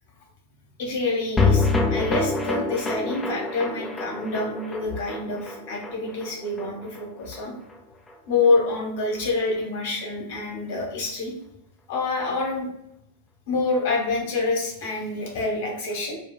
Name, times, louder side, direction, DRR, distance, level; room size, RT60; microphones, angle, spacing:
voice 1, 0.8-7.5 8.3-11.3 11.9-12.7 13.5-16.2, left 3 dB, 55° left, -1 dB, 1.1 m, -27 dB
sound 1, 1.4-7.8 8.1-8.2 8.4-8.5, left 3 dB, 15° left, 0.4 m, -26 dB
4.4 x 2.3 x 2.2 m, 0.76 s
figure-of-eight pair, 90°, 0 cm